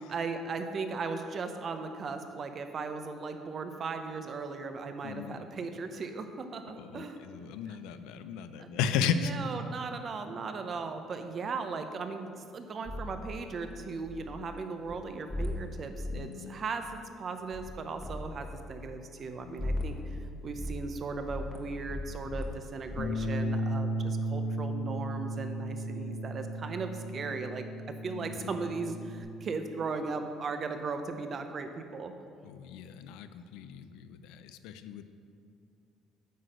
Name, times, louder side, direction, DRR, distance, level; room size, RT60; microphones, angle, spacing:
voice 1, 0.1-7.2 7.7-7.8 8.6-8.7 9.1-20.0 20.4-27.7 28.0-32.1, right 4 dB, 40° right, 7 dB, 0.7 m, -37 dB
voice 2, 5.0-5.4 6.8-9.3 16.1-16.5 19.4-19.6 28.2-28.5 32.4-35.0, left 7 dB, 85° left, 11 dB, 0.4 m, -35 dB
sound 1, 12.8-14.6 14.8-14.9 15.3-16.3 16.7-17.2 17.5-17.7 18.0-19.3 19.6-20.2 20.5-23.3, left 1 dB, 10° left, 1.3 m, -38 dB
Bass guitar, 23.0-29.2, right 1 dB, 65° left, 1.0 m, -35 dB
9.3 x 4.1 x 6.5 m, 2.4 s
cardioid pair, 105°, 0 cm